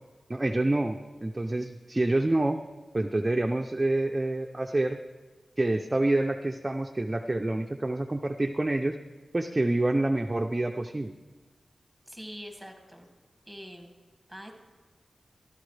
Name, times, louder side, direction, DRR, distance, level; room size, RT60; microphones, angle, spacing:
voice 1, 0.3-2.6 2.9-5.0 5.6-9.0 9.3-11.1, right 2 dB, 25° right, 4 dB, 0.5 m, -27 dB
voice 2, 12.1-13.1 13.5-13.9 14.3-14.5, equal, 5° left, 3 dB, 2.0 m, -44 dB
15.5 x 12.5 x 3.3 m, 1.3 s
wide cardioid pair, 70°, 0 cm